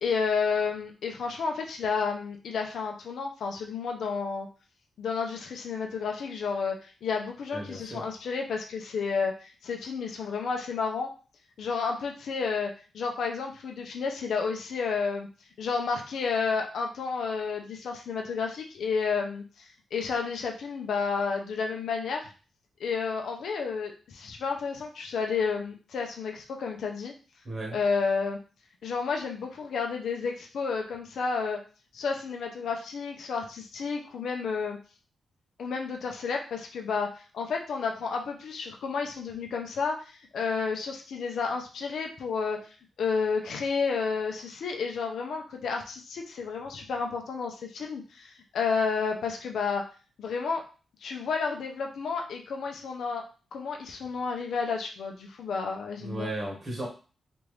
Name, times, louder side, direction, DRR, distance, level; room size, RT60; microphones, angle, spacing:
voice 1, 0.0-4.5 5.0-11.1 11.6-15.3 15.6-22.3 22.8-27.1 27.7-28.4 28.8-31.6 31.9-34.8 35.6-42.7 43.0-49.8 50.2-50.6 51.0-53.2 53.5-56.3, left 5 dB, 65° left, 2 dB, 0.6 m, -31 dB
voice 2, 7.5-8.0 27.4-27.8 56.0-56.9, right 1 dB, 25° right, -3 dB, 1.1 m, -35 dB
3.4 x 2.5 x 3.1 m, 0.36 s
wide cardioid pair, 170°, 0 cm